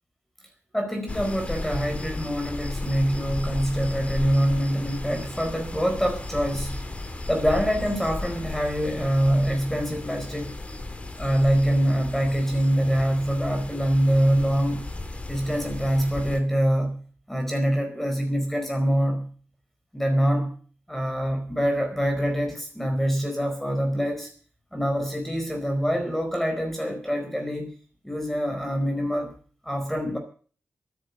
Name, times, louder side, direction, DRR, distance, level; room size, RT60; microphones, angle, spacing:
voice 1, 0.7-6.8 7.3-10.5 11.2-14.8 15.3-17.0 17.3-19.3 19.9-20.5 20.9-24.3 24.7-27.7 28.0-29.3 29.6-30.2, equal, 5° left, 4 dB, 4.5 m, -25 dB
sound 1, 1.1-16.4, left 2 dB, 25° left, 3.2 m, -35 dB
13.5 x 10.0 x 8.3 m, 0.43 s
cardioid pair, 65°, 5 cm